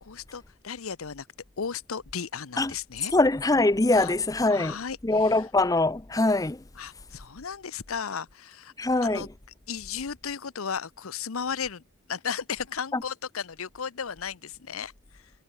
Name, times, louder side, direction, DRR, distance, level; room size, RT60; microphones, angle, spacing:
voice 1, 0.0-1.3 1.6-3.1 3.9-4.1 4.5-5.5 6.7-8.7 9.0-9.3 9.7-11.8 12.1-15.2, left 6 dB, 90° left, 0.8 m, -35 dB
voice 2, 3.1-4.7 5.0-6.6 8.8-9.3 12.9-13.0, left 2 dB, 15° left, 0.5 m, -23 dB
head